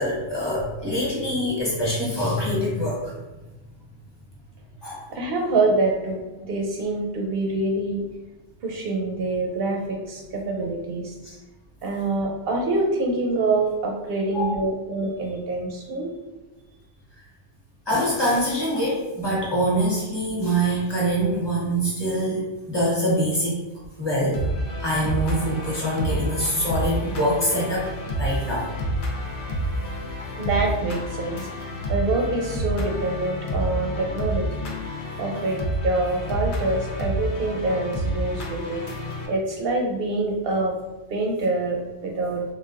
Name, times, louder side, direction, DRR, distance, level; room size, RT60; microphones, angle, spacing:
voice 1, 0.0-3.1 4.8-5.1 11.2-11.4 14.3-14.5 17.9-23.6 24.0-24.4 24.8-27.9 28.2-28.7, equal, 25° left, -6 dB, 0.8 m, -24 dB
voice 2, 5.1-6.2 6.5-8.0 8.6-11.1 11.8-16.1 30.4-34.7 35.2-38.8 39.3-40.7 41.1-42.4, right 2 dB, 60° right, 0 dB, 0.7 m, -25 dB
sound 1, 24.3-39.3, equal, 70° left, 0.8 m, -29 dB
3.9 x 2.1 x 2.4 m, 1.1 s
omnidirectional pair, 1.3 m